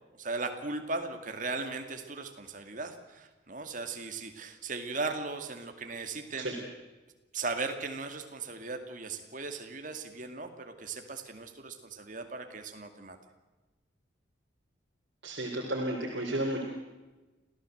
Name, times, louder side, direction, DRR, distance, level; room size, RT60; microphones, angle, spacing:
voice 1, 0.1-6.6 7.3-13.2, right 3 dB, 40° right, 6 dB, 2.3 m, -37 dB
voice 2, 15.2-16.6, right 1 dB, 60° right, -2 dB, 3.8 m, -32 dB
26.0 x 16.0 x 7.9 m, 1.2 s
head